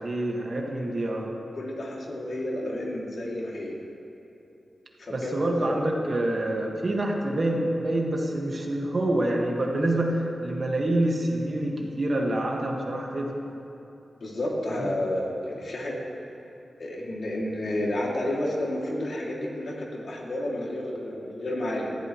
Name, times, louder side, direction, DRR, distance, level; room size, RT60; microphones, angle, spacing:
voice 1, 0.0-1.3 5.1-13.6 14.7-14.9, right 1 dB, 35° right, -1 dB, 1.6 m, -27 dB
voice 2, 1.6-3.8 5.0-5.8 14.2-16.0 16.8-21.9, left 1 dB, 60° left, -3 dB, 2.4 m, -31 dB
19.5 x 14.5 x 3.1 m, 2.9 s
wide cardioid pair, 165°, 0 cm